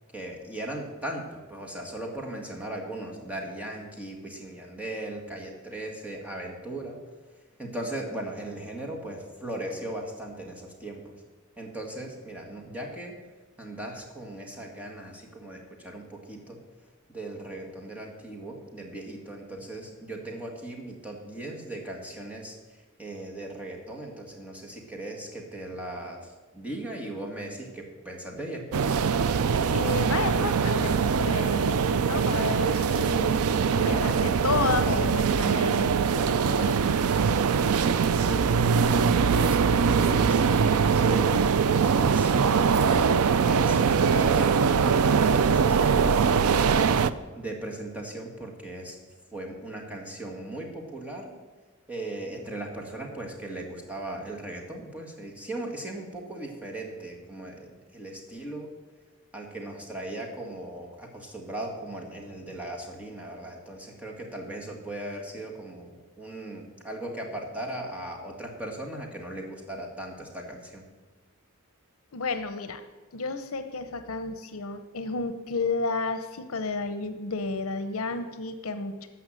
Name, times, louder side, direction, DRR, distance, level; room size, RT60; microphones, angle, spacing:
voice 1, 0.1-7.0 7.6-11.1 11.6-13.2 13.6-16.6 17.1-22.6 23.0-28.9 38.3-40.4 40.7-41.4 41.7-46.8 47.4-49.0 49.3-51.3 51.9-58.7 59.3-70.8, right 1 dB, 5° right, -1 dB, 1.9 m, -38 dB
sound 1, 28.7-47.1, right 6 dB, 85° right, 0.5 m, -22 dB
voice 2, 29.7-33.5 33.7-37.1 72.1-72.8 73.1-79.1, left 4 dB, 70° left, 10 dB, 0.8 m, -32 dB
14.0 x 5.8 x 7.6 m, 1.3 s
head